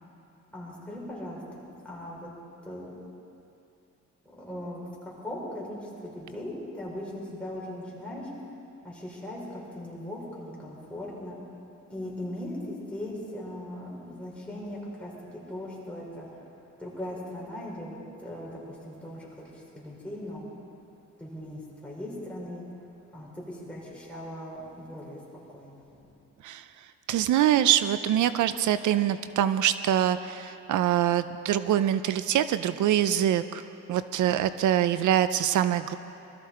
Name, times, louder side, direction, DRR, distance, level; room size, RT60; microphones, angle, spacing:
voice 1, 0.5-2.3 2.6-2.9 4.2-8.5 8.8-11.4 11.9-16.4 16.8-20.4 21.2-22.6 23.1-25.2 25.5-26.1, left 1 dB, 5° left, -5 dB, 4.8 m, -39 dB
voice 2, 27.1-33.6 33.9-36.0, right 11 dB, 80° right, 13 dB, 0.5 m, -24 dB
21.5 x 13.5 x 4.3 m, 2.7 s
cardioid pair, 105°, 30 cm